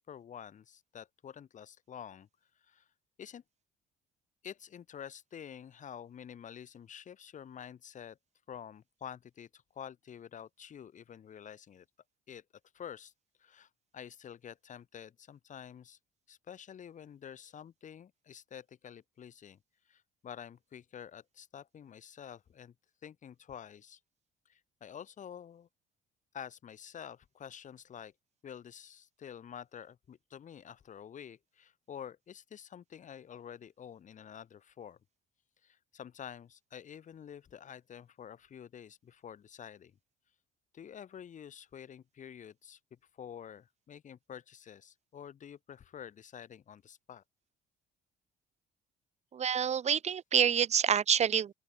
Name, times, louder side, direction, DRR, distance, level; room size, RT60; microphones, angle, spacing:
voice 1, 0.0-2.3 2.7-2.8 3.2-3.4 4.4-8.2 8.5-11.8 12.3-12.4 12.7-13.1 13.4-13.7 13.9-16.0 16.3-19.6 19.9-22.7 23.0-24.0 24.5-25.7 26.3-28.1 28.4-35.0 35.6-39.9 40.7-42.8 43.2-47.2, left 8 dB, 45° left, 7.6 m, -48 dB
voice 2, 49.3-51.5, right 8 dB, 40° right, 1.4 m, -27 dB
open air
cardioid pair, 110°, 17 cm